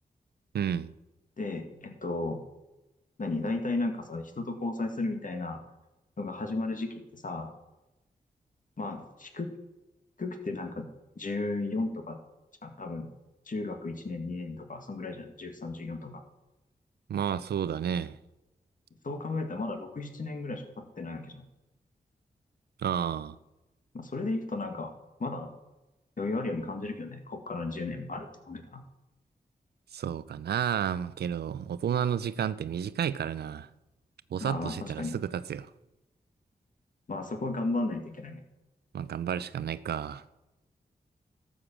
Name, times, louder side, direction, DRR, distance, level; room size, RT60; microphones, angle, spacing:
voice 1, 0.5-0.9 17.1-18.2 22.8-23.4 29.9-33.7 34.3-35.7 38.9-40.2, right 8 dB, 80° right, 0.5 m, -31 dB
voice 2, 1.4-2.4 3.2-5.6 6.2-7.5 8.8-9.5 10.2-10.9 11.2-12.2 12.6-13.1 13.5-16.2 19.0-21.4 23.9-24.9 25.2-25.5 26.2-28.8 34.4-35.1 37.1-38.4, left 2 dB, 55° left, 2.0 m, -34 dB
13.0 x 6.4 x 7.3 m
cardioid pair, 45°, 16 cm